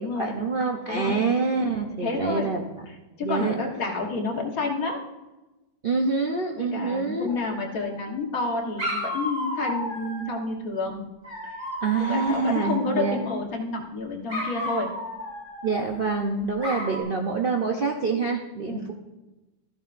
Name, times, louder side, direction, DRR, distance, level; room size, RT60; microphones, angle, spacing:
voice 1, 0.0-2.6 3.2-3.5 5.8-7.3 11.8-13.2 15.6-18.9, right 4 dB, 90° right, 1 dB, 0.4 m, -26 dB
voice 2, 0.9-1.2 2.0-2.5 2.9-5.0 6.6-11.0 11.4-11.6 12.1-14.9 18.7-18.9, left 3 dB, 50° left, 1 dB, 1.7 m, -29 dB
Dog, 7.3-8.1 8.8-10.4 11.2-13.4 14.3-16.2 16.6-17.0, left 1 dB, 40° right, 3.5 m, -33 dB
14.0 x 11.0 x 2.5 m, 1.1 s
omnidirectional pair, 2.1 m